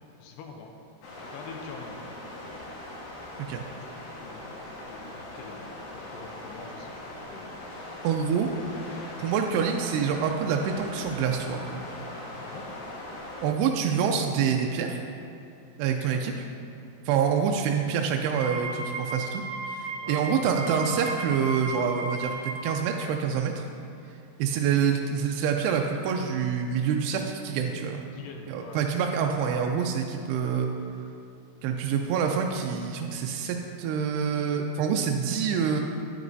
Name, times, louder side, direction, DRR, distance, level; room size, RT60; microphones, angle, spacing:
voice 1, 0.2-0.7 1.2-2.0 3.4-3.8 4.2-4.5 4.9-5.7 5.9-7.5 12.4-12.7 16.1-16.2 20.0-20.3 28.1-28.9, left 5 dB, 80° left, 3 dB, 2.8 m, -45 dB
sound 1, 1.0-13.5, left 1 dB, 65° left, 2.5 m, -41 dB
voice 2, 8.0-8.5 9.2-11.8 13.4-15.0 15.8-16.3 17.1-19.4 19.7-23.6 24.4-28.0 28.5-30.7 31.6-35.8, right 7 dB, 85° right, 2 dB, 2.5 m, -26 dB
Wind instrument woodwind instrument, 18.2-22.8, right 2 dB, 55° right, 2.7 m, -35 dB
10.5 x 9.3 x 2.6 m, 2.5 s
omnidirectional pair, 4.9 m